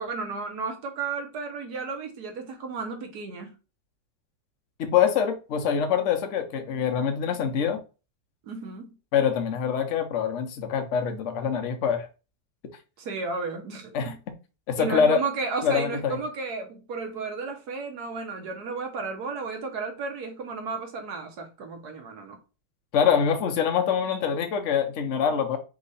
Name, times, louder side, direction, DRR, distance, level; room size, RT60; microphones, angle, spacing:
voice 1, 0.0-3.6 8.5-9.0 13.0-14.2 14.8-22.4, right 4 dB, 65° right, 1.2 m, -33 dB
voice 2, 4.8-7.8 9.1-12.1 13.9-14.1 14.7-15.2 15.6-16.2 22.9-25.6, left 7 dB, 60° left, 0.8 m, -24 dB
3.6 x 3.2 x 3.9 m
omnidirectional pair, 2.1 m